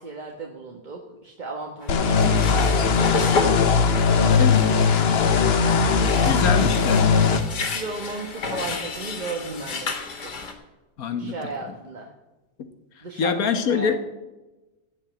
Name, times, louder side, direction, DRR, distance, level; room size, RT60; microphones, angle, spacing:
voice 1, 0.0-2.6 3.0-3.3 6.1-6.7 7.7-10.5 11.2-12.1 13.0-14.0, right 3 dB, 30° right, 1 dB, 1.3 m, -35 dB
sound 1, 1.8-10.5, left 3 dB, 80° left, 2.3 m, -31 dB
sound 2, 1.9-7.4, left 5 dB, 45° left, 0.9 m, -19 dB
voice 2, 6.2-7.1 11.0-11.4 13.2-14.0, left 6 dB, 60° left, 8 dB, 1.6 m, -24 dB
16.0 x 5.5 x 9.1 m, 1.1 s
omnidirectional pair, 1.7 m